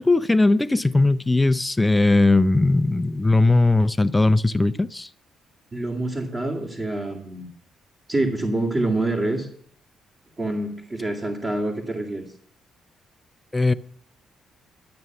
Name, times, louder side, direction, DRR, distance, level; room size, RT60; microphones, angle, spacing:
voice 1, 0.0-5.1 13.5-13.7, left 2 dB, 15° left, 0.5 m, -19 dB
voice 2, 5.7-7.5 8.1-9.5 10.4-12.2, right 2 dB, 30° right, 2.2 m, -26 dB
12.5 x 7.9 x 5.9 m
cardioid pair, 90°, 0 cm